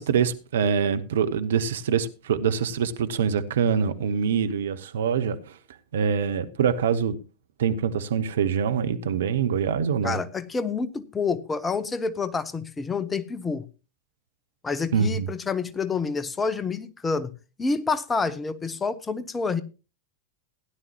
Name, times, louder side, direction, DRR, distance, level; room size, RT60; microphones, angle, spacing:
voice 1, 0.0-5.4 5.9-7.2 7.6-10.2 14.9-15.3, right 7 dB, 60° right, 0.9 m, -24 dB
voice 2, 10.0-13.6 14.6-17.3 17.6-19.6, left 4 dB, 15° left, 0.8 m, -28 dB
16.0 x 10.5 x 3.0 m
figure-of-eight pair, 90°, 0 cm